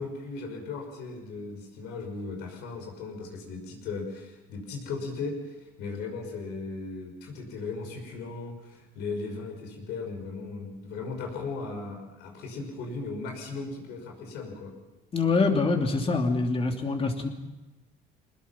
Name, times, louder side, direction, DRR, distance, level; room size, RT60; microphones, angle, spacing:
voice 1, 0.0-14.7, left 4 dB, 90° left, 3 dB, 5.7 m, -37 dB
voice 2, 15.1-17.3, left 3 dB, 35° left, 3 dB, 2.9 m, -25 dB
23.5 x 20.5 x 5.8 m, 1.0 s
cardioid pair, 110°, 17 cm